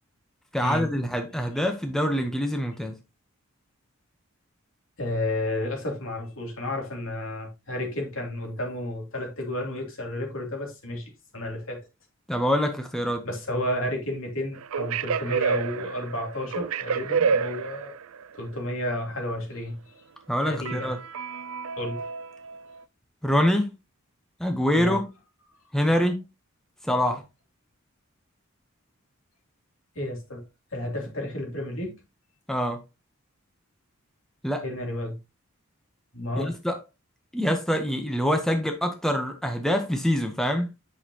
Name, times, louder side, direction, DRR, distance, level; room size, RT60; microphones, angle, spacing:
voice 1, 0.5-3.0 12.3-13.3 20.3-21.0 23.2-23.7 24.4-25.1 25.7-26.2 26.8-27.2 32.5-32.8 34.4-34.6 36.4-36.8 37.3-40.7, equal, ahead, 0.8 m, -25 dB
voice 2, 5.0-11.9 13.2-17.9 18.3-19.8 20.4-20.9 21.8-22.0 24.7-25.0 27.0-27.2 29.9-30.4 30.7-31.9 34.6-35.2 36.1-36.5, left 1 dB, 75° left, 2.9 m, -32 dB
sound 1, 14.6-18.3 20.7-22.8, right 6 dB, 85° right, 0.5 m, -29 dB
8.6 x 6.4 x 2.8 m
head